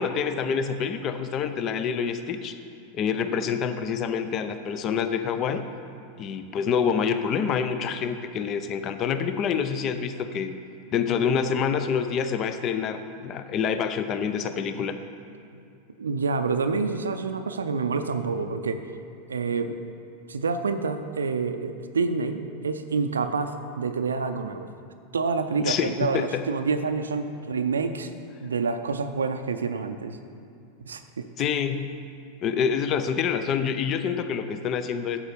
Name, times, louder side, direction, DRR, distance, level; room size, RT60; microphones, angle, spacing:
voice 1, 0.0-2.6 2.9-5.7 6.2-10.6 10.9-15.0 25.6-26.4 31.4-31.9 32.4-35.2, left 7 dB, 40° left, 10 dB, 0.5 m, -27 dB
voice 2, 16.0-18.9 19.3-19.8 20.3-24.7 25.1-28.1 28.4-30.2 30.9-31.3, right 4 dB, 85° right, 8 dB, 0.4 m, -28 dB
8.4 x 7.3 x 5.2 m, 2.5 s
hypercardioid pair, 90°, 0 cm